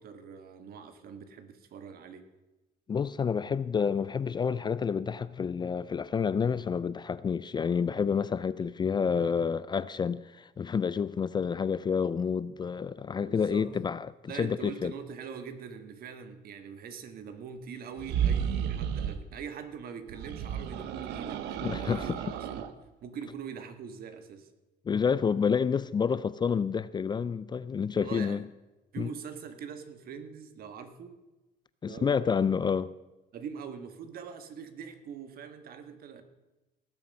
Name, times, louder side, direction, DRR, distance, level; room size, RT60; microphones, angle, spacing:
voice 1, 0.0-2.2 13.3-13.7 14.3-22.7 23.0-24.5 27.9-28.4 28.9-31.1 31.9-32.1 33.3-36.2, right 6 dB, 60° right, 1.4 m, -43 dB
voice 2, 2.9-14.9 21.6-22.2 24.9-28.5 29.0-29.1 31.8-32.9, left 6 dB, 25° left, 0.3 m, -29 dB
sound 1, 18.0-19.2 20.1-22.7, right 8 dB, 85° right, 0.9 m, -32 dB
18.0 x 7.4 x 5.3 m
cardioid pair, 110°, 17 cm